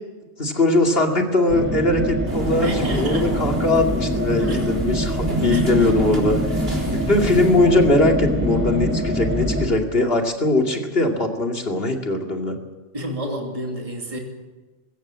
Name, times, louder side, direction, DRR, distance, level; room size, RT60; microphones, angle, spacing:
voice 1, 0.4-6.4 6.9-12.6, left 2 dB, 50° left, 3 dB, 2.7 m, -20 dB
sound 1, 1.5-9.7, equal, 10° right, 3.5 m, -24 dB
sound 2, 2.3-8.1, right 1 dB, 55° right, 3.9 m, -34 dB
voice 2, 2.6-3.4 4.5-4.6 5.5-5.9 12.9-14.2, right 1 dB, 30° right, 1 dB, 2.8 m, -30 dB
sound 3, 4.4-5.0 5.8-6.5 6.8-7.3 8.1-9.3, left 1 dB, 30° left, 3.6 m, -37 dB
21.0 x 16.5 x 7.5 m, 1.3 s
omnidirectional pair, 1.2 m